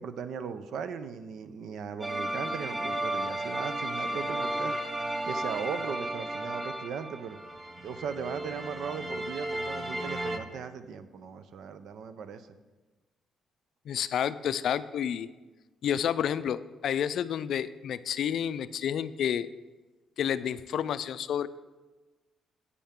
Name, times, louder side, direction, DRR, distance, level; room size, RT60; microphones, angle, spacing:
voice 1, 0.0-7.4 7.8-12.5, right 6 dB, 70° right, 12 dB, 0.6 m, -38 dB
sound 1, 2.0-10.4, right 1 dB, 25° right, 0.8 m, -34 dB
voice 2, 13.9-15.3 15.8-19.5 20.2-21.5, left 9 dB, 70° left, 15 dB, 0.3 m, -30 dB
10.0 x 8.4 x 3.7 m, 1.2 s
cardioid pair, 90°, 0 cm